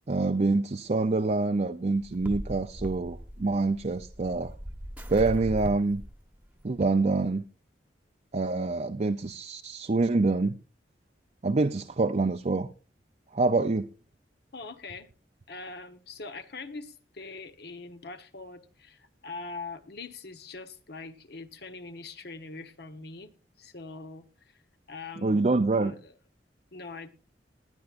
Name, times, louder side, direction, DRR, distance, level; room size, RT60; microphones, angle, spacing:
voice 1, 0.1-4.5 5.1-6.0 6.6-7.4 8.3-10.6 11.4-12.7 13.3-13.9 25.2-25.9, right 3 dB, 40° right, 0.6 m, -26 dB
sound 1, 2.0-6.8, equal, 10° right, 1.1 m, -39 dB
voice 2, 14.5-15.1 15.5-24.6 24.9-25.4 25.8-26.1 26.7-27.1, left 3 dB, 65° left, 1.2 m, -43 dB
20.0 x 11.0 x 2.5 m
head